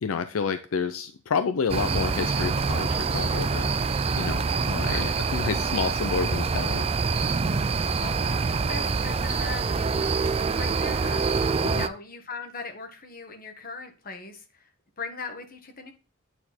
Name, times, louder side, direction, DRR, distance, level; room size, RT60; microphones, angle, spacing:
voice 1, 0.0-6.9 11.6-11.9, left 5 dB, 80° left, 0.5 m, -30 dB
sound 1, 1.7-11.9, right 4 dB, 30° right, 0.4 m, -26 dB
voice 2, 4.7-5.1 8.0-14.7 15.0-15.9, left 3 dB, 45° left, 1.5 m, -39 dB
9.0 x 4.2 x 4.3 m
head